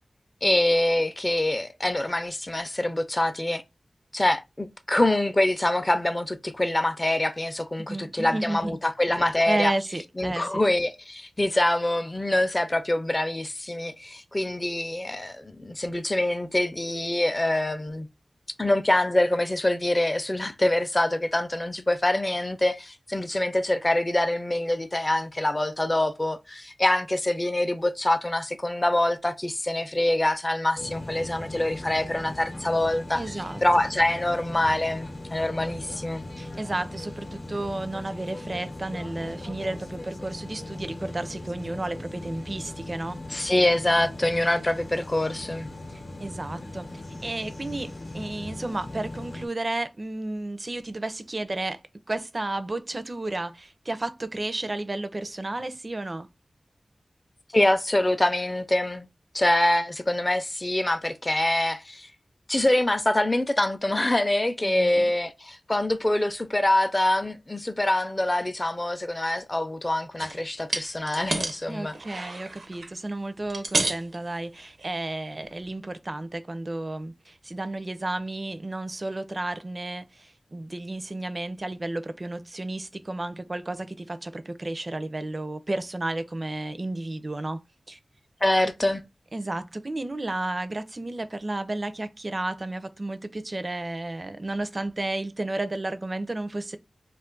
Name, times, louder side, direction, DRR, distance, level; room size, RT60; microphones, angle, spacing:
voice 1, 0.4-3.6 4.1-9.7 10.2-18.1 18.6-33.2 33.6-36.3 43.3-45.7 57.5-59.1 59.3-62.1 62.5-71.9 88.4-89.0, left 1 dB, 25° left, 0.4 m, -25 dB
voice 2, 7.9-8.8 9.4-10.6 33.1-33.9 36.4-43.2 45.9-46.9 47.2-56.3 64.6-65.1 71.7-87.6 87.9-88.0 89.3-96.8, right 2 dB, 40° right, 0.4 m, -32 dB
sound 1, 30.8-49.5, left 1 dB, 60° left, 0.7 m, -39 dB
sound 2, 70.2-70.4 70.7-71.6 71.9-72.9 73.4-74.2 74.8-74.9 75.4-75.5, right 2 dB, 90° right, 0.7 m, -30 dB
2.4 x 2.3 x 3.6 m
wide cardioid pair, 80°, 0 cm